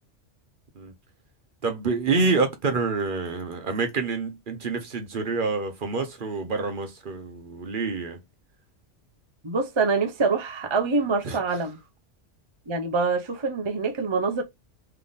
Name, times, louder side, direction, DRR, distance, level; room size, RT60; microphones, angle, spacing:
voice 1, 1.6-8.2 11.2-11.4, right 4 dB, 50° right, 0.9 m, -27 dB
voice 2, 9.4-11.8 12.7-14.4, right 4 dB, 30° right, 0.5 m, -25 dB
3.6 x 3.3 x 3.9 m
omnidirectional pair, 1.2 m